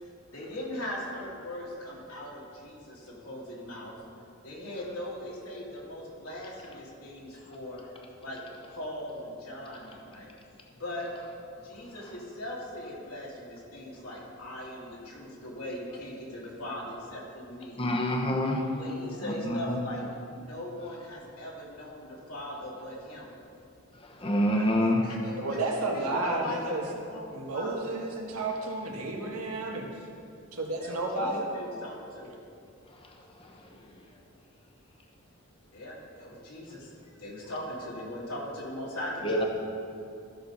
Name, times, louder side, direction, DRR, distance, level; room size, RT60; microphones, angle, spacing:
voice 1, 0.3-3.9 4.4-7.8 8.2-8.4 8.7-10.3 10.8-11.1 11.6-17.8 18.7-20.0 20.3-23.3 24.5-24.7 25.0-25.6 25.9-27.7 30.8-32.3 35.7-39.5, left 1 dB, 80° left, -5 dB, 2.8 m, -39 dB
voice 2, 17.8-18.6 19.4-19.8 24.2-25.0 39.2-39.4, equal, 25° left, 1 dB, 1.0 m, -26 dB
voice 3, 25.4-26.8 27.3-29.8 30.5-31.5, right 2 dB, 90° right, 0 dB, 1.5 m, -31 dB
14.0 x 6.5 x 4.1 m, 2.5 s
head